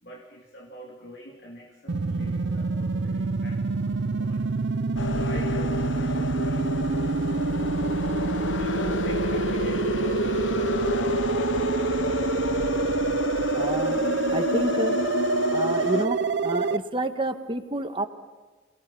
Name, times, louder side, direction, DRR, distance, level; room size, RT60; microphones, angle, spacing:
voice 1, 0.0-4.5 5.1-7.0 8.5-10.7, equal, 55° left, 0 dB, 2.6 m, -42 dB
sound 1, 1.9-16.8, right 4 dB, 65° right, 0.6 m, -27 dB
sound 2, 5.0-16.1, left 3 dB, 75° left, 0.8 m, -30 dB
voice 2, 13.5-15.0 15.5-18.1, right 1 dB, 25° right, 7 dB, 1.5 m, -29 dB
28.0 x 18.5 x 5.6 m, 1.3 s
head